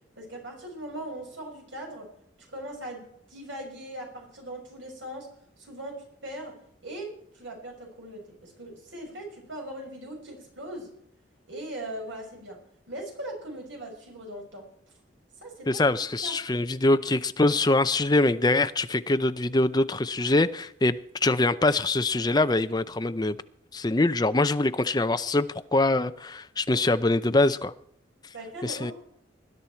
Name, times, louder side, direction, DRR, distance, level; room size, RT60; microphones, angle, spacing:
voice 1, 0.2-2.1 2.5-5.3 5.6-6.0 6.2-6.5 6.8-10.9 11.5-12.6 12.9-14.7 15.4-15.8 16.2-16.4 28.3-28.9, right 1 dB, 85° right, 6.3 m, -39 dB
voice 2, 15.7-23.4 23.7-27.7 28.6-28.9, left 2 dB, 20° left, 0.6 m, -24 dB
20.0 x 11.0 x 4.5 m
head